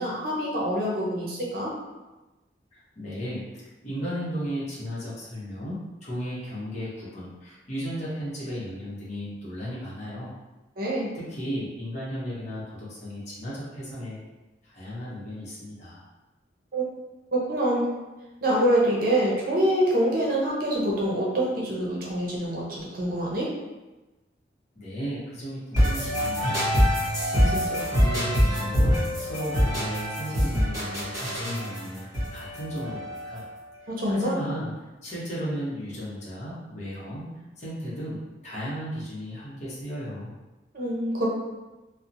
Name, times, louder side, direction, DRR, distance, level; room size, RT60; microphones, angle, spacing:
voice 1, 0.0-1.7 10.8-11.1 16.7-16.9 17.3-17.9 18.4-23.5 33.9-34.4 40.7-41.3, right 1 dB, 55° right, -4 dB, 0.6 m, -25 dB
voice 2, 2.7-10.3 10.8-14.2 14.6-16.1 24.7-26.7 27.3-32.1 32.3-33.5 34.1-34.7 35.0-37.3 37.6-40.4, equal, 40° left, -8 dB, 0.8 m, -35 dB
sound 1, 25.7-33.6, equal, 20° right, 1.3 m, -25 dB
2.8 x 2.0 x 2.5 m, 1.1 s
head